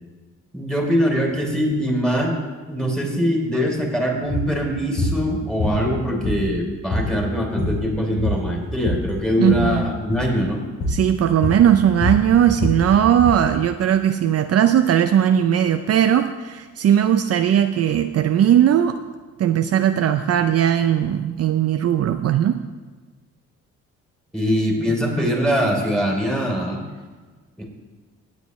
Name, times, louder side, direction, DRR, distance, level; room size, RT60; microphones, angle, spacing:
voice 1, 0.5-2.3 2.7-10.6 24.3-26.8 27.6-27.7, equal, ahead, -1 dB, 3.1 m, -22 dB
sound 1, 4.3-4.5 5.0-5.2 5.6-6.6 6.9-7.1 7.4-7.9 8.2-9.1 9.4-9.7 10.1-10.3 10.8-11.1 11.4-13.4, left 1 dB, 55° left, 3.5 m, -25 dB
voice 2, 9.4-9.8 10.9-19.0 19.4-22.6, right 10 dB, 55° right, 8 dB, 0.5 m, -18 dB
17.5 x 8.4 x 3.2 m, 1.4 s
cardioid pair, 90°, 30 cm